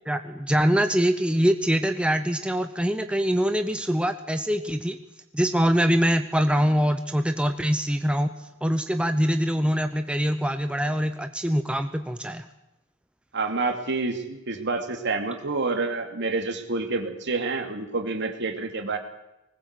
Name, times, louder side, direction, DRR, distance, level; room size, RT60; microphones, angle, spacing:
voice 1, 0.1-5.0 5.3-8.3 8.6-12.5, equal, 5° right, 8 dB, 0.8 m, -24 dB
voice 2, 13.3-19.0, right 3 dB, 55° right, 5 dB, 2.7 m, -28 dB
20.5 x 19.0 x 8.3 m, 0.93 s
head